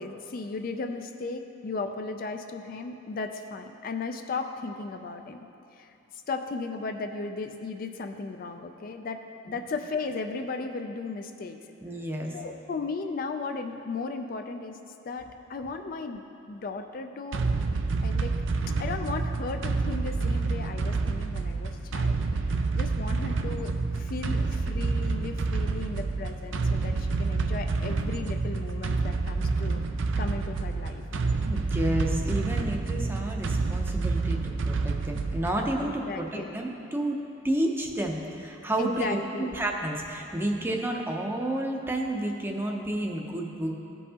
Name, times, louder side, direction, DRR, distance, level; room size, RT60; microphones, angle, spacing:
voice 1, 0.0-5.5 5.7-11.6 12.3-14.8 15.0-17.7 18.0-18.3 18.8-22.2 22.4-29.8 30.2-31.0 35.8-36.6 38.8-39.5, left 3 dB, 45° left, 6 dB, 0.4 m, -36 dB
voice 2, 11.8-12.3 31.5-37.2 37.4-43.7, right 1 dB, 10° right, 1 dB, 0.6 m, -30 dB
sound 1, 17.3-35.7, right 3 dB, 80° right, 0.5 m, -28 dB
15.0 x 5.4 x 2.8 m, 2.7 s
head